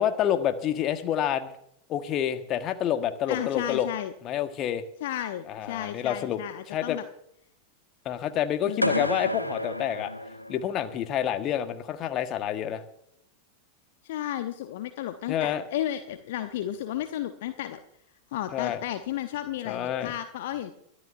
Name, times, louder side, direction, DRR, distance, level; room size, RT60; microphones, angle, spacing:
voice 1, 0.0-1.5 1.9-3.9 4.2-4.8 5.5-6.4 6.7-7.0 8.0-10.1 10.5-12.8 15.3-15.6 18.5-18.8 19.6-20.1, left 10 dB, 35° left, 8 dB, 1.5 m, -28 dB
voice 2, 3.3-4.1 5.0-7.0 8.7-9.0 14.0-17.8 18.3-20.7, left 12 dB, 55° left, 9 dB, 0.9 m, -33 dB
sound 1, 8.8-10.9, left 1 dB, 90° left, 1.0 m, -30 dB
23.5 x 13.5 x 2.7 m, 0.73 s
figure-of-eight pair, 90°, 0 cm